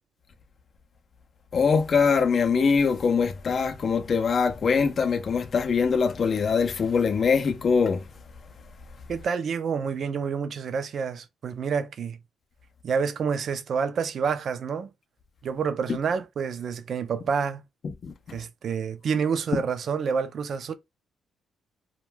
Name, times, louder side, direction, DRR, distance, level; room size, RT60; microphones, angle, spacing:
voice 1, 1.5-8.1 17.8-18.4, left 5 dB, 45° left, 0.4 m, -23 dB
voice 2, 9.1-12.2 12.8-14.9 15.4-17.6 18.3-20.7, right 6 dB, 55° right, 0.4 m, -28 dB
2.2 x 2.2 x 3.1 m
cardioid pair, 90°, 0 cm